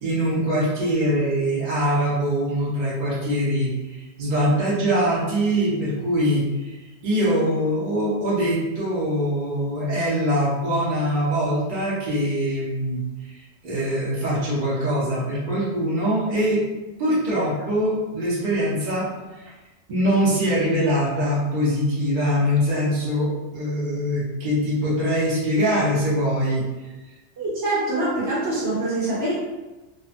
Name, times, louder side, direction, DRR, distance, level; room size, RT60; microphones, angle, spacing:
voice 1, 0.0-16.6 17.0-19.1 19.4-19.5 19.9-26.6, equal, 50° right, -8 dB, 0.8 m, -23 dB
voice 2, 27.4-29.3, right 2 dB, 75° right, -8 dB, 1.3 m, -24 dB
2.5 x 2.3 x 2.4 m, 1.1 s
omnidirectional pair, 1.2 m